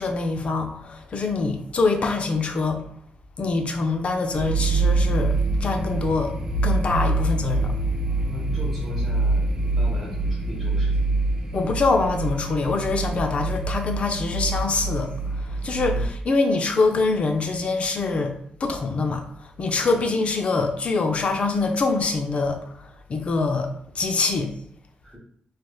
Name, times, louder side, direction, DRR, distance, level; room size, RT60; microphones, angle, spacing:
voice 1, 0.0-2.8 3.4-6.4 6.6-7.8 8.3-8.4 11.5-18.3 18.6-24.5, left 3 dB, 45° left, 5 dB, 0.5 m, -24 dB
sound 1, 4.3-16.1, right 2 dB, 25° right, 0.5 m, -25 dB
voice 2, 8.3-11.2 15.9-16.0 25.0-25.2, left 1 dB, 10° right, -7 dB, 1.0 m, -38 dB
3.2 x 3.0 x 2.2 m, 0.64 s
cardioid pair, 105°, 3 cm